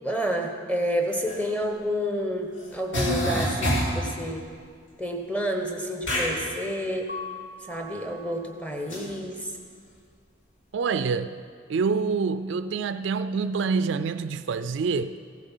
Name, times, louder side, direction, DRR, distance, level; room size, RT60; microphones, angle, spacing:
voice 1, 0.0-4.4 5.0-7.1 7.7-9.4, equal, 5° left, 3 dB, 1.0 m, -29 dB
sound 1, 1.3-1.4 2.6-2.7 2.9-4.0 6.0-6.3 8.9-9.0, equal, 65° left, 2.7 m, -26 dB
Mallet percussion, 7.1-8.9, left 3 dB, 40° left, 1.0 m, -41 dB
voice 2, 10.7-11.4 11.7-15.1, right 5 dB, 65° right, 12 dB, 0.3 m, -26 dB
15.5 x 8.8 x 5.6 m, 2.1 s
head